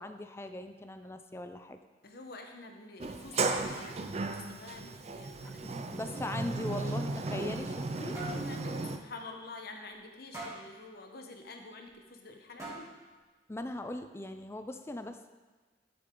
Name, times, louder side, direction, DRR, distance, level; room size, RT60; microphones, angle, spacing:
voice 1, 0.0-1.8 5.4-8.2 13.5-15.3, left 1 dB, 15° left, 8 dB, 0.5 m, -40 dB
voice 2, 2.0-6.0 7.9-12.9, left 2 dB, 60° left, 4 dB, 1.1 m, -48 dB
Sliding door, 3.0-9.0, right 3 dB, 40° right, 0.5 m, -35 dB
sound 1, 8.1-8.5 8.9-9.0 9.4-9.5 10.3-10.7 11.9-12.0 12.6-13.1, right 1 dB, 20° right, 2.3 m, -43 dB
10.5 x 7.1 x 3.8 m, 1.3 s
head